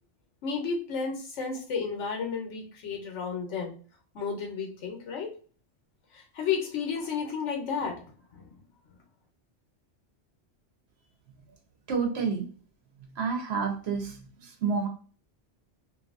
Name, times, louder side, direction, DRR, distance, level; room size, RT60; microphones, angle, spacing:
voice 1, 0.4-3.7 4.1-5.3 6.1-8.1 8.3-8.5, left 6 dB, 90° left, 2 dB, 1.1 m, -32 dB
voice 2, 11.9-12.4 13.2-14.2 14.4-14.9, right 5 dB, 65° right, 2 dB, 1.0 m, -29 dB
2.7 x 2.6 x 2.4 m, 0.41 s
omnidirectional pair, 1.2 m